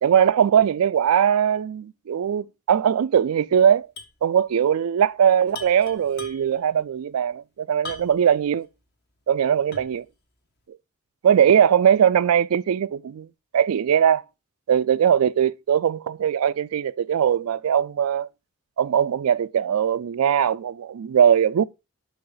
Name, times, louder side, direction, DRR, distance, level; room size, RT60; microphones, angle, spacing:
voice 1, 0.0-3.9 4.2-8.7 9.3-10.0 11.2-13.3 13.5-14.2 14.7-18.3 18.8-21.6, right 8 dB, 90° right, 0.4 m, -20 dB
sound 1, 4.0-4.2 4.5-4.6 5.5-6.7 7.8-8.4 8.9-9.0 9.7-10.1, left 3 dB, 50° left, 1.3 m, -40 dB
10.5 x 5.7 x 3.9 m
head